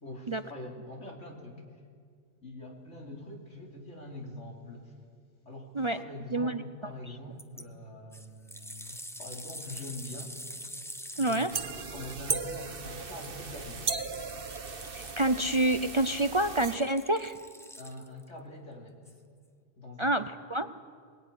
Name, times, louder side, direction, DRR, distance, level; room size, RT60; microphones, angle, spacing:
voice 1, 0.0-1.6 2.4-4.9 5.5-10.3 11.1-13.9 17.8-19.1 19.8-20.1, left 1 dB, 85° left, 0 dB, 3.7 m, -44 dB
voice 2, 6.3-6.6 11.2-11.5 14.9-17.4 20.0-20.7, right 1 dB, 35° right, 10 dB, 0.5 m, -28 dB
sound 1, 7.4-7.6 8.1-18.3 19.1-19.2, equal, 5° left, 0.7 m, -46 dB
sound 2, 11.5-16.8, right 5 dB, 50° right, 1.3 m, -37 dB
22.0 x 21.0 x 9.8 m, 2.1 s
omnidirectional pair, 1.2 m